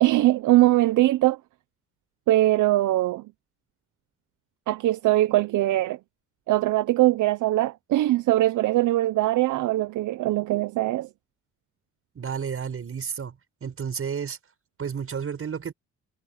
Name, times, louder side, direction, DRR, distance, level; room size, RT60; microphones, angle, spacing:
voice 1, 0.0-1.4 2.3-3.2 4.7-6.0 6.5-11.1, right 16 dB, 80° right, 0.8 m, -21 dB
voice 2, 12.1-13.4 13.6-14.4 14.8-15.7, right 7 dB, 45° right, 6.4 m, -31 dB
cardioid pair, 90°, 30 cm